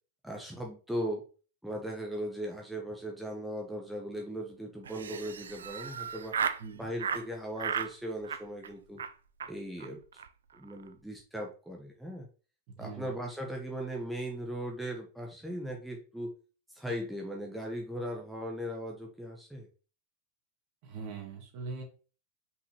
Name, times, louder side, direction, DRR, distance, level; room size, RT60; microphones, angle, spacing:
voice 1, 0.2-1.2 1.6-6.4 6.8-9.0 9.5-10.2 10.5-12.3 12.8-16.3 16.7-19.7, equal, ahead, -1 dB, 1.3 m, -38 dB
Laughter, 4.8-6.6 7.0-7.2 7.6-7.9 8.2-8.7 9.0-9.1 9.4-9.5 9.8-9.9 10.1-10.3 10.5-10.9, right 7 dB, 65° right, 0.5 m, -35 dB
voice 2, 12.7-13.1 20.8-21.8, right 4 dB, 45° right, 2 dB, 2.2 m, -42 dB
5.6 x 5.3 x 3.1 m, 0.35 s
figure-of-eight pair, 90°, 0 cm